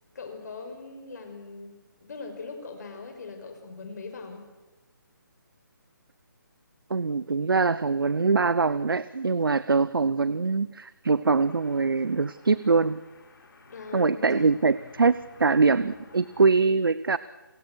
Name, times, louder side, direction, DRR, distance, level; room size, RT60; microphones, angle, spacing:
voice 1, 0.1-4.4 13.7-14.5, left 4 dB, 50° left, 5 dB, 6.0 m, -40 dB
voice 2, 6.9-13.0 13.9-17.2, right 4 dB, 90° right, 17 dB, 0.8 m, -23 dB
sound 1, 11.3-16.5, left 3 dB, 75° left, 5.1 m, -53 dB
29.0 x 21.5 x 6.3 m, 1.2 s
hypercardioid pair, 160°, 11 cm